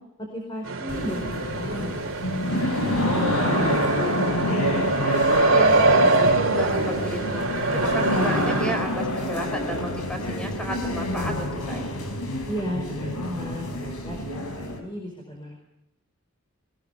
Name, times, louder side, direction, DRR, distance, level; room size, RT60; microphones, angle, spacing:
voice 1, 0.2-4.5 12.5-15.6, equal, 20° left, 0 dB, 4.9 m, -34 dB
sound 1, 0.6-8.8, right 3 dB, 65° right, 2.6 m, -24 dB
sound 2, 0.9-14.8, left 1 dB, 90° left, 5.0 m, -28 dB
voice 2, 5.5-11.9, equal, 5° left, 5 dB, 4.5 m, -33 dB
22.0 x 21.0 x 5.7 m, 0.84 s
head